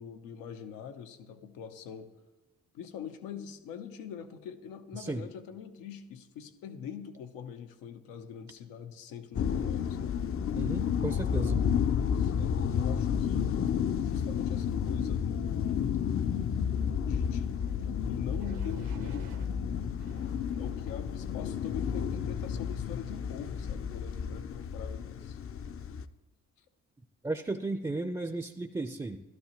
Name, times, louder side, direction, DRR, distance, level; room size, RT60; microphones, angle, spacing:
voice 1, 0.0-2.1 2.7-10.2 11.3-13.6 14.0-16.0 17.0-19.6 20.6-25.4, left 8 dB, 85° left, 7 dB, 0.8 m, -43 dB
sound 1, 9.3-26.0, left 7 dB, 45° left, 0.5 m, -31 dB
voice 2, 10.5-11.6 27.2-29.2, right 2 dB, 10° right, 8 dB, 0.5 m, -34 dB
sound 2, 17.5-17.8 18.4-19.5 20.0-21.0 21.6-22.0, right 7 dB, 80° right, 1.3 m, -55 dB
12.5 x 12.0 x 2.9 m, 1.2 s
supercardioid pair, 55°, 33 cm